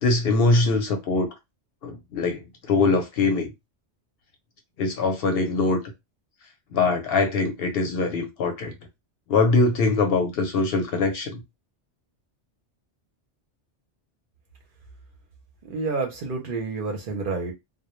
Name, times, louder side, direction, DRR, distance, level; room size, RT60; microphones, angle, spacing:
voice 1, 0.0-1.3 1.8-3.5 4.8-5.8 6.7-8.7 9.3-11.4, left 3 dB, 65° left, 0.7 m, -22 dB
voice 2, 15.6-17.5, right 4 dB, 60° right, 0.7 m, -29 dB
2.1 x 2.0 x 2.9 m
omnidirectional pair, 1.2 m